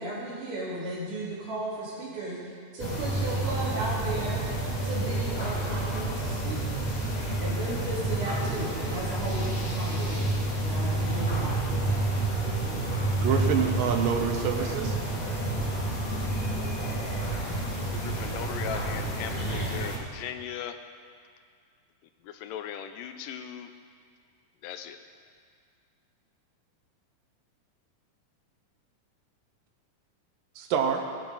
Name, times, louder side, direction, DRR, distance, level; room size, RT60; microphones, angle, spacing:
voice 1, 0.0-4.4 4.8-6.9 7.4-12.0, right 1 dB, 65° right, -10 dB, 4.0 m, -35 dB
sound 1, 2.8-20.0, right 2 dB, 20° left, 1.2 m, -29 dB
voice 2, 13.2-15.0 30.6-31.0, right 7 dB, 80° right, 4 dB, 2.7 m, -26 dB
voice 3, 17.9-20.8 22.2-23.7 24.6-25.0, left 9 dB, 80° left, 8 dB, 2.2 m, -38 dB
20.0 x 8.9 x 4.0 m, 2.1 s
omnidirectional pair, 3.9 m